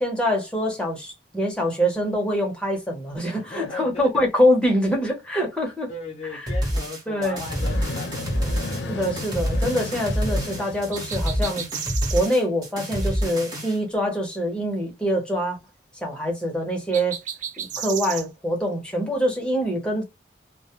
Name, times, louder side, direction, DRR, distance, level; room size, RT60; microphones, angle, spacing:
voice 1, 0.0-5.9 6.3-6.5 7.1-7.4 8.9-11.7 12.1-15.6 16.0-17.2 17.6-20.0, equal, 5° left, 0.8 m, -24 dB
voice 2, 3.3-4.0 5.9-8.6 17.7-17.8, left 3 dB, 40° left, 0.7 m, -37 dB
sound 1, 6.5-13.8, equal, 20° right, 0.9 m, -27 dB
sound 2, 7.2-11.8, left 2 dB, 85° left, 0.6 m, -34 dB
sound 3, 10.9-12.3 16.9-18.3, right 9 dB, 45° right, 0.4 m, -33 dB
2.2 x 2.1 x 2.8 m
head